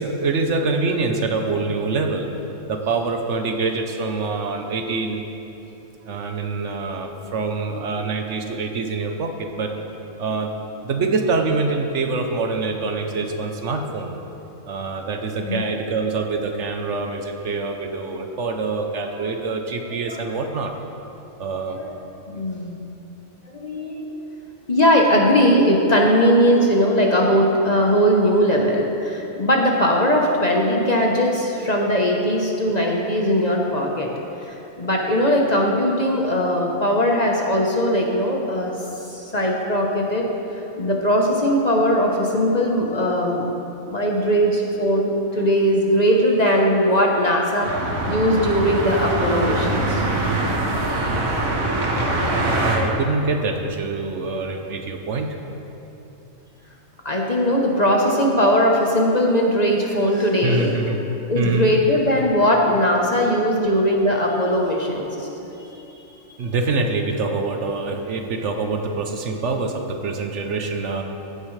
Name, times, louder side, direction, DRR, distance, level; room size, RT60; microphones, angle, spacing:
voice 1, 0.0-2.3 2.6-5.2 6.0-9.7 10.2-14.2 14.6-20.7 21.4-21.8 52.6-55.4 60.4-61.0 61.3-61.7 66.4-71.0, right 3 dB, 60° right, 4 dB, 1.0 m, -25 dB
voice 2, 22.3-22.8 23.5-24.2 24.7-34.1 34.5-38.7 39.1-40.3 40.5-43.5 43.8-47.8 48.1-50.0 57.0-60.9 61.3-65.8, equal, 35° left, -1 dB, 0.9 m, -19 dB
sound 1, 47.6-52.8, right 2 dB, 80° right, 1.6 m, -23 dB
15.0 x 9.5 x 3.2 m, 3.0 s
omnidirectional pair, 1.4 m